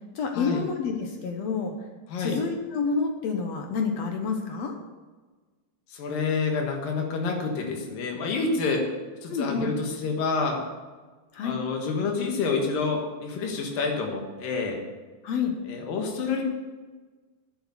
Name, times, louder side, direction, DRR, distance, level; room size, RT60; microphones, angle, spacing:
voice 1, 0.1-1.8 2.2-4.7 9.3-9.7 11.3-11.6 15.2-15.5, left 5 dB, 65° left, 3 dB, 1.8 m, -28 dB
voice 2, 5.9-8.9 9.2-10.6 11.4-14.8 15.7-16.4, left 4 dB, 85° left, 1 dB, 3.2 m, -28 dB
10.5 x 8.1 x 6.9 m, 1.3 s
omnidirectional pair, 3.9 m